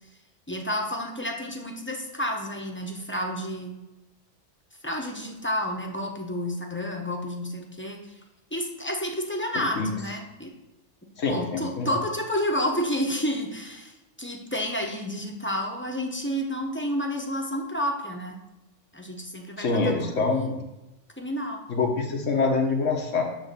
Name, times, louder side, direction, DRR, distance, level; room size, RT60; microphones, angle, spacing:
voice 1, 0.5-3.7 4.8-8.1 8.5-10.5 11.3-18.4 18.9-20.6 21.2-21.6, equal, 10° left, 1 dB, 0.8 m, -30 dB
voice 2, 11.2-12.0 19.6-20.6 21.7-23.2, left 4 dB, 80° left, 1 dB, 1.5 m, -25 dB
9.0 x 3.4 x 6.8 m, 1.0 s
omnidirectional pair, 1.3 m